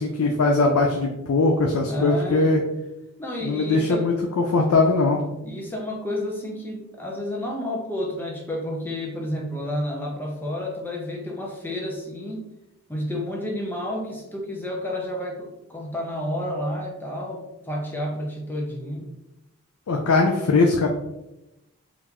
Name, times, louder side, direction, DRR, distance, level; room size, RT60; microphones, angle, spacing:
voice 1, 0.0-2.6 3.4-5.2 19.9-20.9, left 3 dB, 80° left, 1 dB, 0.4 m, -20 dB
voice 2, 1.9-2.6 3.2-4.1 5.4-12.4 12.9-19.1, left 1 dB, 10° left, -1 dB, 0.5 m, -30 dB
3.6 x 2.5 x 2.9 m, 0.92 s
head